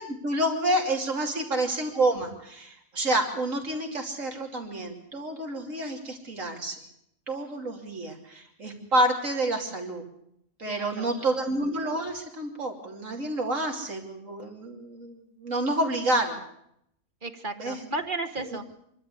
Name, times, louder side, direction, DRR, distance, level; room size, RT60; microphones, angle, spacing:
voice 1, 0.1-6.8 7.3-10.0 10.6-16.4 17.6-17.8, right 1 dB, 80° right, 2 dB, 3.2 m, -28 dB
voice 2, 10.6-11.4 17.2-18.6, right 2 dB, 40° right, 7 dB, 1.5 m, -34 dB
25.5 x 12.5 x 8.4 m, 0.75 s
omnidirectional pair, 1.3 m